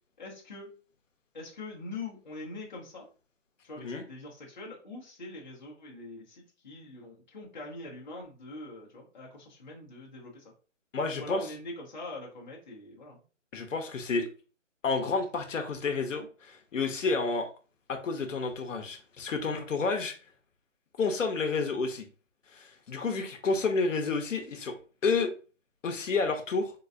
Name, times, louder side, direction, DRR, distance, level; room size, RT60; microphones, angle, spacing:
voice 1, 0.2-0.7 1.3-3.1 3.6-10.5 11.1-13.2, left 2 dB, 35° left, -3 dB, 0.9 m, -43 dB
voice 2, 10.9-11.4 13.5-14.3 14.8-17.5 17.9-20.1 21.0-22.0 22.5-24.7 25.0-25.3 25.8-26.7, left 4 dB, 85° left, 5 dB, 0.8 m, -30 dB
3.9 x 2.2 x 2.5 m, 0.36 s
hypercardioid pair, 175°, 37 cm